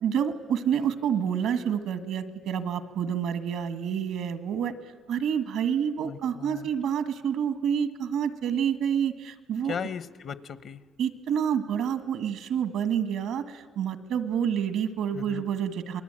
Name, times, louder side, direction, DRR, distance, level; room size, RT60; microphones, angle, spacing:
voice 1, 0.0-4.7 5.1-9.8 11.0-16.0, right 8 dB, 85° right, 11 dB, 1.7 m, -28 dB
voice 2, 6.0-6.7 9.6-10.8 15.1-15.4, left 7 dB, 60° left, 15 dB, 1.1 m, -37 dB
27.5 x 21.0 x 8.9 m, 1.4 s
cardioid pair, 90°, 0 cm